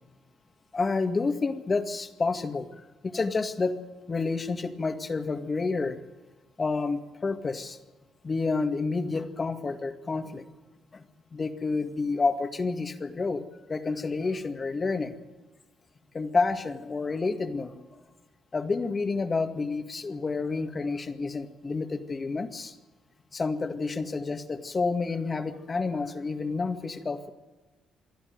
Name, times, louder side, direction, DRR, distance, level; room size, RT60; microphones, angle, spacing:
voice 1, 0.7-3.7 4.1-6.0 6.6-7.8 8.2-10.4 10.9-11.0 11.3-13.4 13.7-15.2 16.1-17.7 18.5-22.7 23.3-27.3, left 4 dB, 30° left, 8 dB, 2.1 m, -29 dB
27.5 x 11.5 x 9.5 m, 1.2 s
cardioid pair, 90°, 0 cm